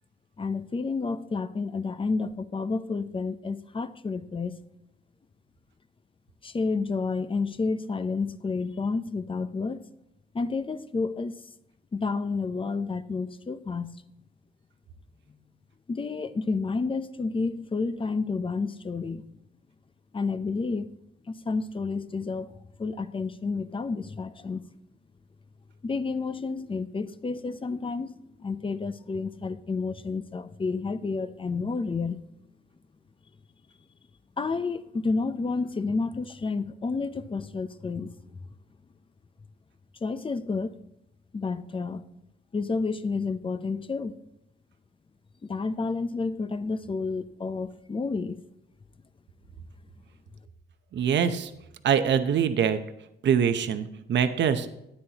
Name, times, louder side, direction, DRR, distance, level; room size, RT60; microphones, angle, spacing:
voice 1, 0.4-4.6 6.4-9.9 10.3-11.4 11.9-13.9 15.9-19.3 20.1-20.9 21.3-24.7 25.8-32.2 34.4-38.2 40.0-40.8 41.3-42.1 42.5-44.2 45.4-48.4, left 4 dB, 25° left, 0.7 m, -30 dB
voice 2, 50.9-51.5 51.8-52.8 53.2-54.7, right 7 dB, 65° right, 0.8 m, -24 dB
13.0 x 9.6 x 2.9 m
cardioid pair, 90°, 20 cm